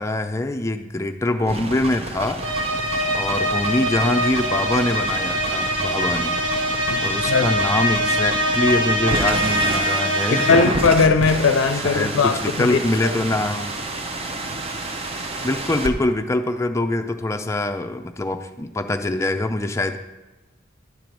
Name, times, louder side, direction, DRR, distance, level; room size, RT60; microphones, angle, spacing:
voice 1, 0.0-2.7 3.1-6.4 7.0-10.7 11.7-13.7 15.4-20.0, left 1 dB, 15° left, 7 dB, 0.4 m, -24 dB
sound 1, 1.4-15.9, right 2 dB, 30° right, 0.6 m, -30 dB
sound 2, 2.4-10.9, equal, 85° right, 1.1 m, -23 dB
voice 2, 6.9-7.5 10.3-13.1, left 4 dB, 90° left, 8 dB, 0.5 m, -19 dB
10.5 x 4.6 x 5.2 m, 1.1 s
head